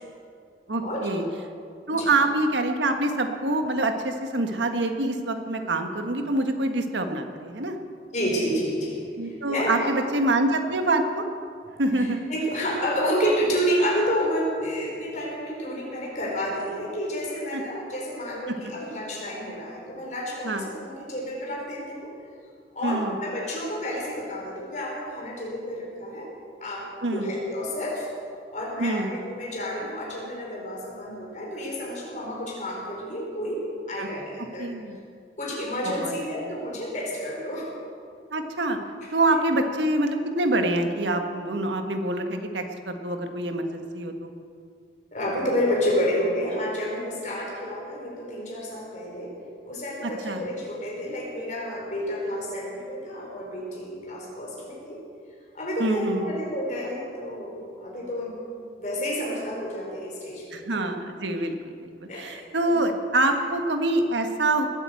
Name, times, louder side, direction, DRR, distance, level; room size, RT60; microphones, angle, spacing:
voice 1, 0.7-1.2 1.9-7.8 9.2-11.2 11.8-12.2 17.5-17.6 18.5-18.7 20.4-20.7 22.8-23.1 27.0-27.3 28.8-29.1 34.0-34.1 34.6-35.0 35.8-36.1 38.3-38.8 39.1-44.3 50.2-50.4 55.8-56.3 60.5-64.8, right 2 dB, 85° right, 5 dB, 1.6 m, -26 dB
voice 2, 8.1-9.9 12.0-22.1 22.7-26.3 26.6-28.1 28.5-34.7 35.4-37.7 39.0-39.1 45.1-49.4 49.6-55.0 55.5-58.4 58.8-60.7 62.1-62.8, equal, 40° left, -2 dB, 4.7 m, -30 dB
20.0 x 9.1 x 7.9 m, 2.3 s
head